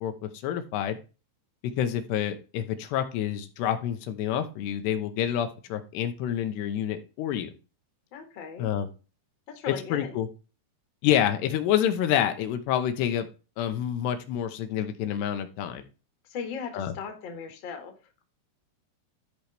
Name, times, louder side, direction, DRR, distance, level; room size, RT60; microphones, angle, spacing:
voice 1, 0.0-1.0 1.8-7.5 8.6-8.9 9.7-10.3 11.0-13.3 13.6-15.8 16.7-16.9, left 10 dB, 80° left, 8 dB, 3.0 m, -28 dB
voice 2, 8.1-8.7 9.5-10.1 16.2-17.9, left 6 dB, 45° left, 5 dB, 1.6 m, -37 dB
13.0 x 4.7 x 3.4 m, 0.33 s
omnidirectional pair, 4.9 m